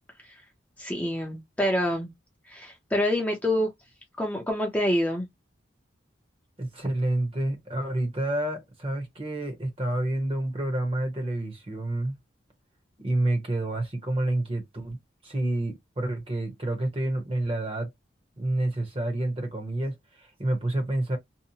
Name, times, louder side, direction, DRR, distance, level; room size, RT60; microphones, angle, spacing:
voice 1, 0.8-2.1 2.5-3.7 4.2-5.3, left 1 dB, 10° left, 0.5 m, -26 dB
voice 2, 6.6-12.2 13.0-15.0 15.2-17.9 18.4-21.2, right 1 dB, 30° right, 0.8 m, -29 dB
2.8 x 2.1 x 2.7 m
head